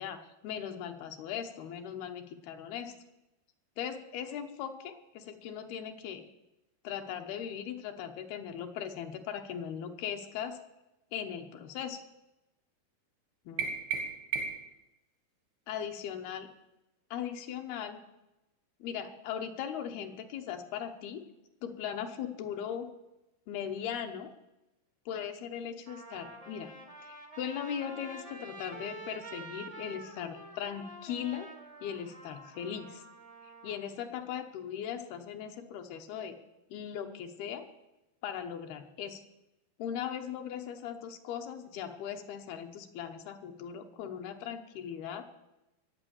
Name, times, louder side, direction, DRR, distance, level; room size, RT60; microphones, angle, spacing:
voice 1, 0.0-3.0 3.8-6.3 6.8-10.6 11.1-12.0 13.5-13.7 15.7-16.5 17.1-18.0 18.8-21.3 21.6-22.9 23.5-24.3 25.1-26.7 27.1-31.5 31.8-33.0 33.4-36.4 36.7-37.7 38.2-39.2 39.8-45.2, left 8 dB, 75° left, 5 dB, 2.9 m, -39 dB
sound 1, 13.6-14.8, right 5 dB, 80° right, 3.7 m, -34 dB
Trumpet, 25.1-25.2 25.8-33.8, right 2 dB, 35° right, 0.5 m, -48 dB
20.5 x 8.2 x 7.1 m, 0.95 s
omnidirectional pair, 4.6 m